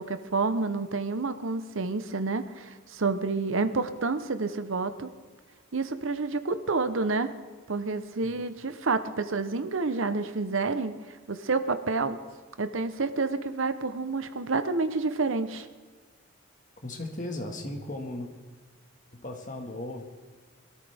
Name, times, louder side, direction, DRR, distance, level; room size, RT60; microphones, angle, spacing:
voice 1, 0.0-5.1 5.7-7.3 7.7-11.0 11.3-12.2 12.6-15.7, right 3 dB, 70° right, 11 dB, 0.8 m, -29 dB
voice 2, 16.8-18.3 19.1-20.0, left 1 dB, 35° left, 3 dB, 1.7 m, -36 dB
22.0 x 13.5 x 3.5 m, 1.4 s
head